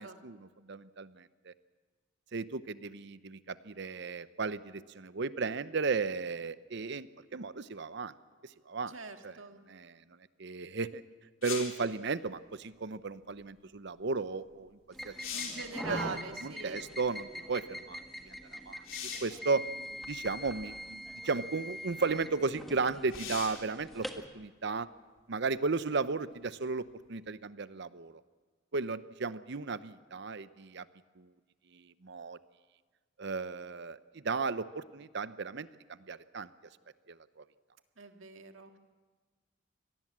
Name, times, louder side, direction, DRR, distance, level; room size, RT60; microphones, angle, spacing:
voice 1, 0.0-1.5 2.3-8.1 8.7-8.9 9.2-9.4 9.7-10.0 10.4-11.0 11.4-14.7 15.0-15.1 15.9-18.8 19.2-19.6 20.1-24.1 24.3-24.9 25.3-28.2 28.7-30.9 31.2-31.3 31.7-32.4 33.2-36.5, right 4 dB, 60° right, 14 dB, 0.8 m, -35 dB
voice 2, 8.9-9.6 15.3-16.9 38.0-38.8, right 4 dB, 80° right, 5 dB, 1.9 m, -43 dB
sound 1, 11.4-11.9 14.5-14.6 15.0-15.7 18.8-19.4 20.4-20.5 23.1-23.7 27.3-27.4, left 7 dB, 85° left, 3.8 m, -40 dB
sound 2, 14.9-24.3, equal, ahead, 1.6 m, -43 dB
24.5 x 18.5 x 7.4 m, 1.4 s
head